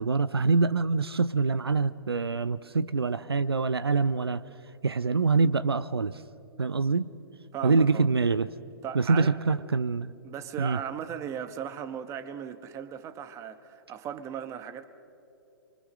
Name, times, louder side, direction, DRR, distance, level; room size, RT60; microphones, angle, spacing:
voice 1, 0.0-4.4 4.8-6.2 6.6-7.1 7.6-8.5 8.9-10.1 10.6-10.8, right 4 dB, 85° right, 0.6 m, -25 dB
voice 2, 7.5-8.1 8.8-9.4 10.2-14.8, right 8 dB, 25° right, 1.3 m, -37 dB
28.0 x 25.0 x 6.3 m
figure-of-eight pair, 120°, 13 cm